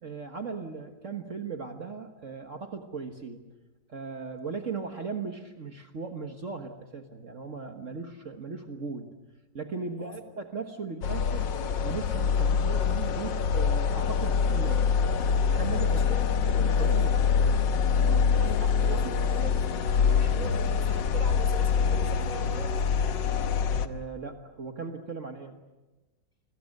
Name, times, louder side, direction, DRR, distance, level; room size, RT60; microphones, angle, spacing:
voice 1, 0.0-3.5 3.9-9.1 9.5-11.5 11.8-14.9 15.5-16.2 16.5-17.6 18.0-19.1 20.2-20.4 23.8-25.5, right 5 dB, 45° right, 5 dB, 1.7 m, -38 dB
sound 1, 11.0-23.9, left 6 dB, 90° left, 1.8 m, -25 dB
voice 2, 15.9-17.3 18.4-23.0, right 1 dB, 20° left, 7 dB, 2.9 m, -42 dB
29.0 x 22.0 x 6.6 m, 1.1 s
omnidirectional pair, 1.9 m